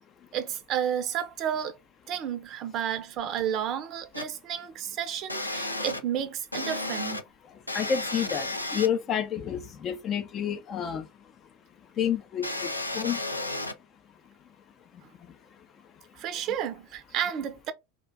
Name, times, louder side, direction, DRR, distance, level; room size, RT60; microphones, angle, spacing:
voice 1, 0.3-1.8 2.1-7.2 15.0-15.1 16.2-17.7, right 9 dB, 40° right, 0.5 m, -31 dB
sound 1, 4.1-4.2 5.3-6.0 6.5-7.2 7.7-8.9 12.4-13.7, left 2 dB, 90° left, 0.4 m, -32 dB
voice 2, 7.7-11.0 12.0-13.2, left 8 dB, 35° left, 0.5 m, -29 dB
2.5 x 2.2 x 3.3 m
figure-of-eight pair, 80°, 0 cm